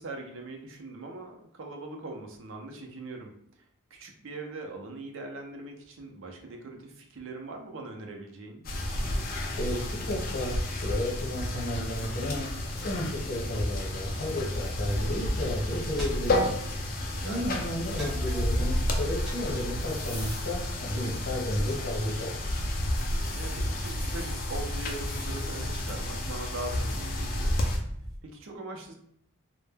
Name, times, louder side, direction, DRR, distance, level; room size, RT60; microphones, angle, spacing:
voice 1, 0.0-3.6 3.9-8.7 17.1-17.6 23.3-27.6 28.2-28.9, right 2 dB, 60° right, 3 dB, 0.5 m, -41 dB
sound 1, 8.6-27.8, left 1 dB, 40° left, 0.3 m, -31 dB
voice 2, 9.6-16.6 17.2-22.5, left 1 dB, 55° left, -7 dB, 0.8 m, -33 dB
sound 2, 15.9-22.4 22.7-28.2, equal, ahead, 0.6 m, -43 dB
2.1 x 2.1 x 3.2 m, 0.68 s
head